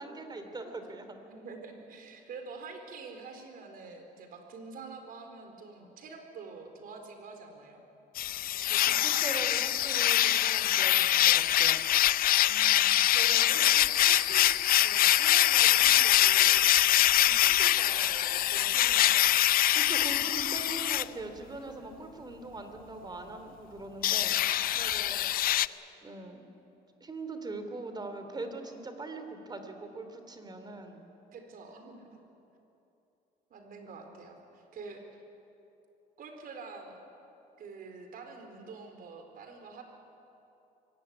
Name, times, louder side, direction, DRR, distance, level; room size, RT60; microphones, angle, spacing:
voice 1, 0.0-1.2 8.7-11.8 19.7-24.4 26.0-26.4 27.0-31.0, right 2 dB, 25° right, 7 dB, 3.0 m, -41 dB
voice 2, 1.3-7.8 12.4-16.6 17.0-19.3 24.7-25.4 31.3-32.0 33.5-35.2 36.2-37.0 37.6-39.8, right 4 dB, 60° right, 5 dB, 4.1 m, -46 dB
sound 1, 8.2-21.0 24.0-25.7, left 13 dB, 60° left, 0.5 m, -24 dB
23.5 x 17.5 x 10.0 m, 2.9 s
cardioid pair, 110°, 17 cm